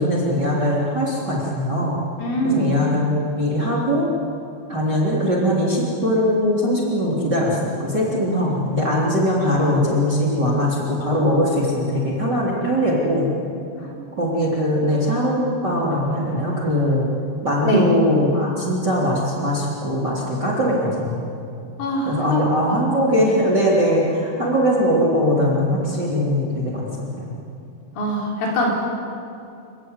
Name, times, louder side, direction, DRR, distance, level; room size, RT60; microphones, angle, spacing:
voice 1, 0.0-2.0 2.4-4.1 4.7-13.3 14.2-17.1 17.4-21.3 22.0-27.4, equal, 25° right, -4 dB, 3.2 m, -21 dB
voice 2, 2.2-2.7 13.8-13.9 17.6-18.0 21.8-22.8 23.1-23.3 28.0-28.9, equal, 75° left, -2 dB, 6.6 m, -23 dB
28.0 x 15.0 x 9.7 m, 2.6 s
omnidirectional pair, 5.9 m